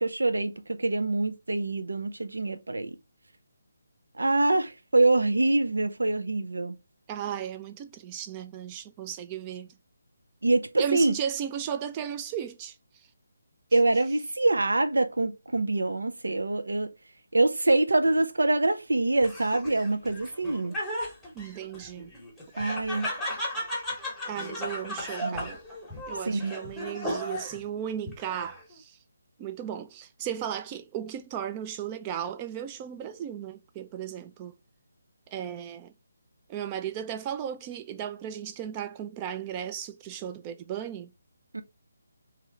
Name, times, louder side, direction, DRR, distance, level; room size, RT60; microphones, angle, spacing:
voice 1, 0.0-3.0 4.2-6.8 10.4-11.1 13.7-16.9 17.3-20.7 22.6-23.1 25.2-25.5 26.3-26.8 41.5-41.6, right 2 dB, 80° right, 0.6 m, -25 dB
voice 2, 7.1-9.7 10.8-12.8 21.3-22.1 24.3-25.6 26.1-29.0 29.4-34.5 35.3-35.9 36.5-41.1, right 9 dB, 20° right, 0.4 m, -35 dB
Laughter, 19.2-27.6 28.1-28.7, equal, ahead, 1.1 m, -35 dB
3.1 x 3.0 x 3.6 m
figure-of-eight pair, 155°, 0 cm